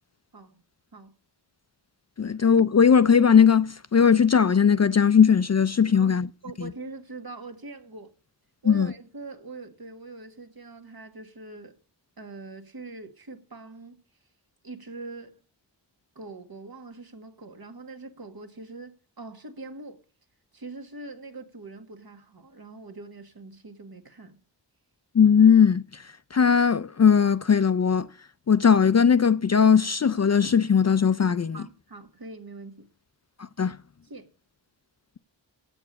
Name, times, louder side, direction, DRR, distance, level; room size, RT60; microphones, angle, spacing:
voice 1, 2.2-6.3 6.6-6.7 8.7-8.9 25.1-26.0 26.3-28.1 28.5-31.6 33.6-33.8, left 7 dB, 40° left, 0.4 m, -19 dB
voice 2, 6.4-8.1 8.6-11.8 12.2-14.0 14.6-15.4 16.1-20.0 20.5-24.4 31.5-32.9 34.0-34.3, right 3 dB, 55° right, 1.5 m, -42 dB
8.1 x 6.8 x 8.4 m
wide cardioid pair, 55°, 44 cm